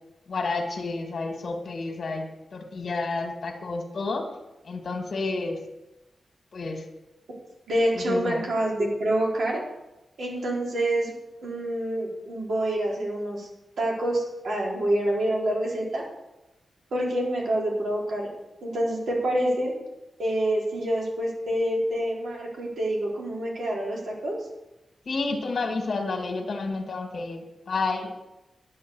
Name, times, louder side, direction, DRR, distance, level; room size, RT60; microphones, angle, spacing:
voice 1, 0.3-4.3 4.6-5.6 6.5-6.9 7.9-8.5 25.1-28.1, left 3 dB, 60° left, 3 dB, 2.1 m, -30 dB
voice 2, 7.7-9.6 10.2-11.2 11.4-13.5 13.8-16.0 16.9-18.3 18.6-19.7 20.2-24.4, right 1 dB, 85° right, -3 dB, 4.0 m, -27 dB
11.0 x 8.5 x 7.1 m, 0.98 s
wide cardioid pair, 135°, 0 cm